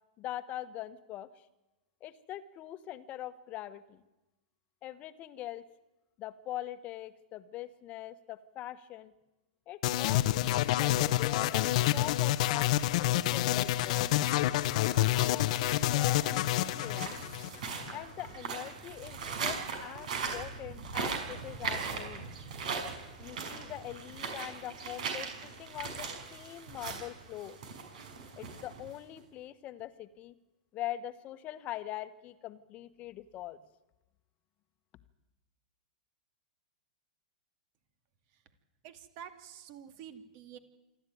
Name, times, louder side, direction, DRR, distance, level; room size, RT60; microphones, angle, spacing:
voice 1, 0.2-1.3 2.0-4.0 4.8-5.6 6.2-9.1 9.7-12.7 13.0-14.1 15.1-17.2 17.9-22.3 23.2-27.6 28.4-30.3 30.7-33.6, left 13 dB, 35° left, 12 dB, 1.3 m, -42 dB
sound 1, 9.8-17.9, left 15 dB, 55° left, 0.9 m, -28 dB
sound 2, 13.5-29.2, right 5 dB, 70° right, 5.7 m, -40 dB
voice 2, 38.8-40.6, right 9 dB, 45° right, 9 dB, 2.5 m, -48 dB
26.5 x 12.0 x 9.4 m, 1.0 s
hypercardioid pair, 120°, 4 cm